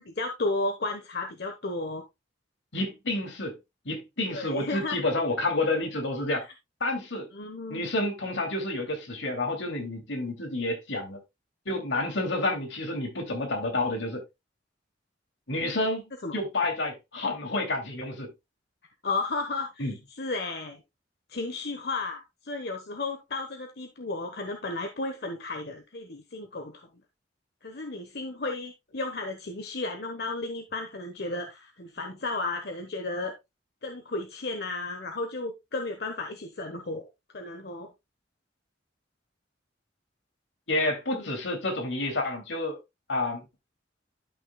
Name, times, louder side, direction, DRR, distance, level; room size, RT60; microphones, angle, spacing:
voice 1, 0.2-2.0 4.3-5.0 6.4-6.5 7.3-7.9 16.2-16.3 19.0-20.8 21.3-26.9 27.6-33.3 33.8-37.1 37.3-37.9 41.1-41.3, left 2 dB, 60° left, 1.1 m, -33 dB
voice 2, 2.7-3.6 3.8-6.4 6.8-7.3 7.7-11.2 11.7-14.2 15.5-18.3 19.8-19.9 40.7-42.8 43.1-43.4, left 2 dB, 80° left, 2.8 m, -29 dB
12.0 x 6.1 x 2.3 m
head